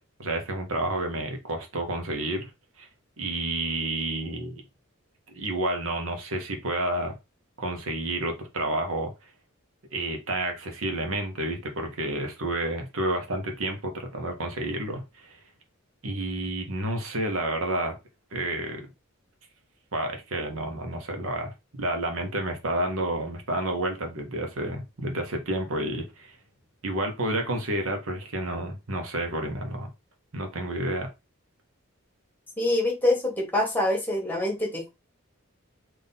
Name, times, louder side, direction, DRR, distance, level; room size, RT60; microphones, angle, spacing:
voice 1, 0.2-2.5 2.8-2.9 3.2-4.5 5.3-7.2 7.6-9.1 9.9-15.4 16.0-18.0 18.3-18.9 19.9-21.5 21.8-26.4 26.8-29.9 30.3-31.1, right 1 dB, 75° right, 1.0 m, -30 dB
voice 2, 32.6-34.9, left 1 dB, 10° left, 1.4 m, -25 dB
3.7 x 2.6 x 4.0 m
head